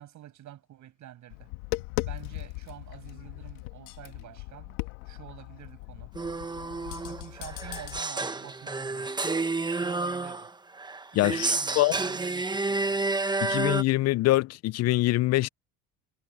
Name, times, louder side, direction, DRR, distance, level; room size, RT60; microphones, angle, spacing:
voice 1, 0.0-1.5 2.0-4.8 5.1-6.1 7.0-9.3 9.8-10.5 11.1-13.1, right 12 dB, 55° right, 7.4 m, -47 dB
Tap, 1.3-8.0, left 21 dB, 90° left, 1.9 m, -38 dB
sound 1, 6.1-13.8, right 3 dB, 10° right, 1.1 m, -30 dB
voice 2, 11.1-11.9 13.4-15.5, left 17 dB, 50° left, 0.4 m, -24 dB
supercardioid pair, 105°, 35 cm